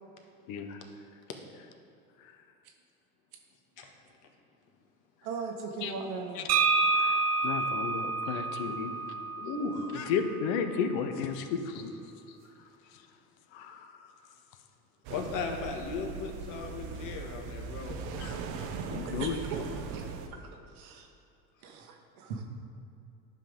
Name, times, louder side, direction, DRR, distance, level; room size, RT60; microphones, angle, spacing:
voice 1, 0.5-0.8 2.2-2.4 5.8-5.9 6.3-6.5 6.9-8.9 9.9-11.9 12.3-12.4 12.9-13.1 13.5-14.3 18.2-19.4, left 6 dB, 65° left, 8 dB, 1.0 m, -34 dB
voice 2, 5.2-6.4 19.2-20.0 20.3-20.5 20.8-21.1 21.6-22.4, right 4 dB, 75° right, 2 dB, 1.5 m, -38 dB
sound 1, 6.5-10.3, right 4 dB, 35° right, 0.8 m, -29 dB
voice 3, 9.4-9.9 15.1-18.3, left 4 dB, 45° left, 2 dB, 1.6 m, -37 dB
sound 2, 15.0-20.3, right 5 dB, 55° right, 1.0 m, -39 dB
11.0 x 5.8 x 5.2 m, 2.7 s
hypercardioid pair, 80°, 44 cm